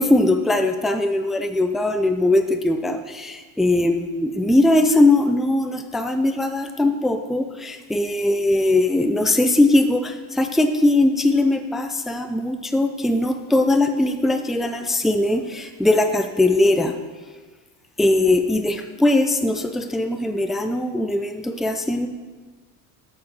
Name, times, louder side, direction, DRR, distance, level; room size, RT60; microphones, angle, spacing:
voice 1, 0.0-16.9 18.0-22.1, left 2 dB, ahead, 7 dB, 0.3 m, -20 dB
8.4 x 6.0 x 6.4 m, 1.4 s
cardioid pair, 130°, 42 cm